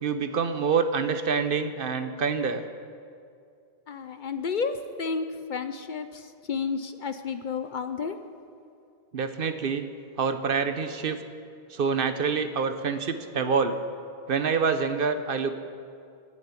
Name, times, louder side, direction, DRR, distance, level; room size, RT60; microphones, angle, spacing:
voice 1, 0.0-2.6 9.1-9.9 10.2-11.2 11.7-13.8 14.3-15.6, right 5 dB, 60° right, 9 dB, 1.0 m, -26 dB
voice 2, 3.9-8.2, left 5 dB, 55° left, 10 dB, 0.7 m, -31 dB
14.5 x 7.5 x 9.6 m, 2.4 s
omnidirectional pair, 1.1 m